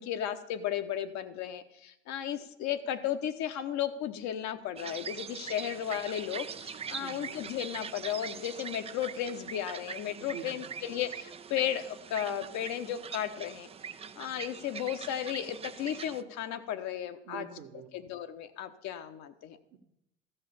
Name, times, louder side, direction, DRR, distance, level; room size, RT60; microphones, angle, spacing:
voice 1, 0.0-13.7 14.2-17.5 17.9-19.6, left 10 dB, 45° left, 8 dB, 1.0 m, -34 dB
sound 1, 4.8-16.2, right 7 dB, 15° right, 0.5 m, -42 dB
voice 2, 7.0-7.3 10.2-10.7 17.2-17.9 19.7-19.8, right 9 dB, 55° right, 5 dB, 1.4 m, -45 dB
14.5 x 5.6 x 7.0 m, 0.81 s
figure-of-eight pair, 65°, 37 cm